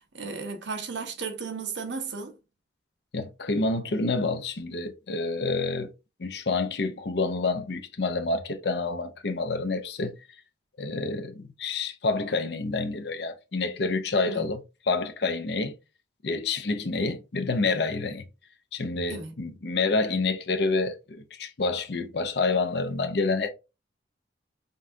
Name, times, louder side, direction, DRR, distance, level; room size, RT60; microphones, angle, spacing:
voice 1, 0.1-2.4 14.3-14.5 19.1-19.3, right 5 dB, 80° right, 0.9 m, -34 dB
voice 2, 3.1-5.9 6.2-10.1 10.8-15.8 16.2-18.3 18.7-23.5, left 3 dB, 60° left, 0.6 m, -28 dB
5.2 x 2.4 x 2.7 m
head